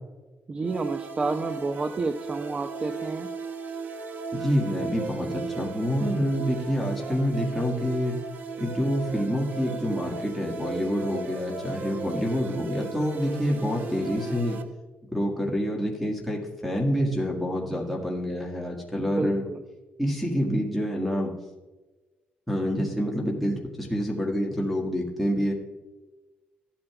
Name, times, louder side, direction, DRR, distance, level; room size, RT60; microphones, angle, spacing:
voice 1, 0.5-3.3 13.4-13.5 19.1-19.6, right 3 dB, 30° right, 8 dB, 0.5 m, -30 dB
sound 1, 0.6-14.6, right 4 dB, 60° right, 0.8 m, -36 dB
voice 2, 4.3-8.2 8.6-14.6 15.1-19.4 20.0-21.3 22.5-25.5, equal, ahead, -3 dB, 1.7 m, -27 dB
14.5 x 8.7 x 2.3 m, 1.2 s
cardioid pair, 115°, 4 cm